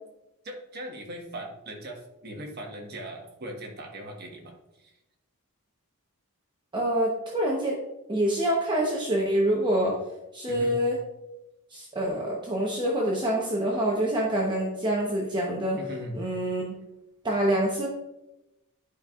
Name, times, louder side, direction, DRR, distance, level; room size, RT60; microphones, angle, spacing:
voice 1, 0.4-4.9 10.5-10.8 15.8-16.2, right 1 dB, 45° right, 1 dB, 1.3 m, -39 dB
voice 2, 6.7-7.8 8.1-10.0 10.3-11.0 11.7-15.8 16.1-16.7 17.2-17.9, right 1 dB, 20° right, -3 dB, 0.9 m, -26 dB
11.5 x 5.3 x 2.4 m, 0.94 s
head